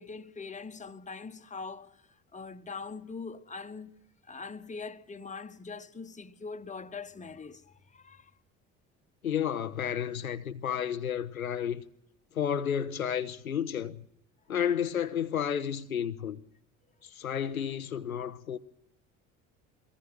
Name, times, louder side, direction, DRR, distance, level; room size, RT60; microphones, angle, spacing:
voice 1, 0.0-4.0 4.2-8.3, left 4 dB, 20° left, 1.2 m, -42 dB
voice 2, 9.2-11.8 12.3-14.0 14.5-16.4 17.0-18.6, left 8 dB, 85° left, 0.7 m, -31 dB
23.0 x 18.5 x 6.1 m
figure-of-eight pair, 55°, 41 cm